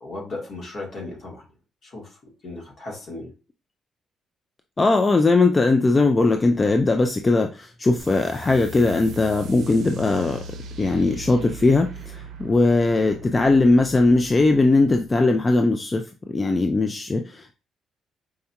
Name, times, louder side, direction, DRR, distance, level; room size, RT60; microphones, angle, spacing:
voice 1, 0.0-1.4 1.8-2.1 2.4-3.3, left 2 dB, 55° left, -1 dB, 1.5 m, -35 dB
voice 2, 4.8-10.4 10.8-16.0 16.3-17.5, left 3 dB, 25° left, 4 dB, 0.3 m, -19 dB
sound 1, 8.0-15.1, right 2 dB, 75° right, 0.6 m, -39 dB
4.6 x 2.7 x 2.3 m, 0.33 s
cardioid pair, 90°, 0 cm